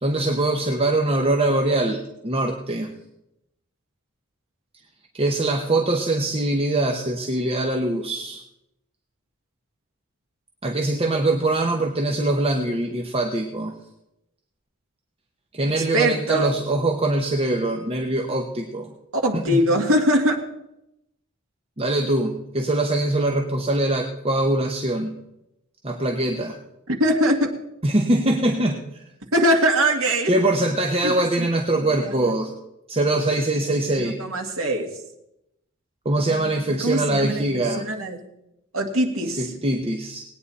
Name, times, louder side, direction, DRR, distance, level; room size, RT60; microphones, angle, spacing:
voice 1, 0.0-2.9 5.1-8.4 10.6-13.8 15.5-18.9 19.3-19.7 21.8-25.1 25.8-26.6 27.8-29.0 30.3-32.5 32.9-34.2 36.0-37.8 39.3-40.2, right 2 dB, 30° right, 3 dB, 1.0 m, -23 dB
voice 2, 15.7-16.5 19.1-20.4 26.9-27.6 29.3-30.4 31.0-31.5 31.9-32.3 33.9-34.9 36.8-38.3 38.7-39.5, equal, 70° right, 2 dB, 2.0 m, -22 dB
19.0 x 9.4 x 4.2 m, 0.86 s
head